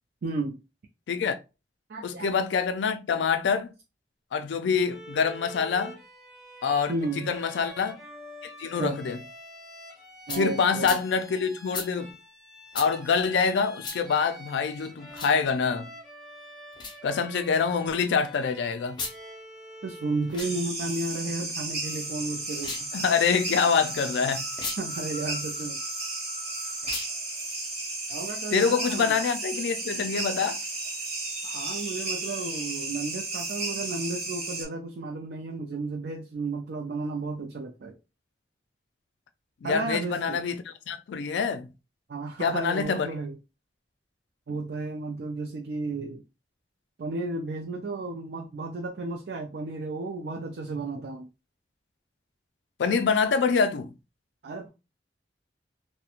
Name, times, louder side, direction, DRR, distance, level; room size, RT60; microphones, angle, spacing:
voice 1, 0.2-0.6 1.9-2.3 6.9-7.3 8.8-9.1 10.3-11.0 19.8-22.9 24.8-25.8 28.1-29.2 31.4-37.9 39.6-40.4 42.1-43.4 44.5-46.2 47.0-51.3 54.4-54.7, right 3 dB, 60° right, 0.4 m, -33 dB
voice 2, 1.1-1.4 2.0-3.7 4.3-6.0 6.6-8.0 8.4-9.2 10.4-12.1 12.7-15.9 17.0-19.0 22.9-24.4 28.5-30.6 39.6-41.7 42.4-43.1 52.8-53.9, left 5 dB, 80° left, 0.3 m, -26 dB
Bowed string instrument, 4.9-20.7, equal, ahead, 0.9 m, -46 dB
sound 1, 10.3-10.4 10.8-11.0 11.7-11.9 12.7-12.9 13.8-14.0 15.1-15.4 16.7-17.0 18.9-19.2 20.2-20.5 22.5-22.9 24.5-24.8 26.8-27.1, left 4 dB, 25° left, 0.5 m, -35 dB
sound 2, 20.4-34.6, right 2 dB, 35° right, 1.1 m, -34 dB
2.8 x 2.1 x 2.4 m
head